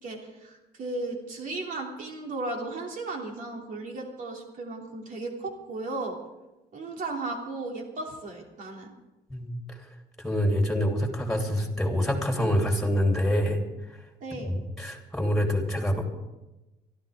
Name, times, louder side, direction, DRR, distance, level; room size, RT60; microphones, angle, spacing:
voice 1, 0.0-6.2 6.7-8.9 14.2-14.5, right 2 dB, 55° right, 0 dB, 2.9 m, -35 dB
voice 2, 9.3-9.8 10.2-13.6 14.3-16.1, equal, ahead, 1 dB, 3.1 m, -26 dB
24.5 x 13.0 x 3.6 m, 1.0 s
cardioid pair, 110°, 17 cm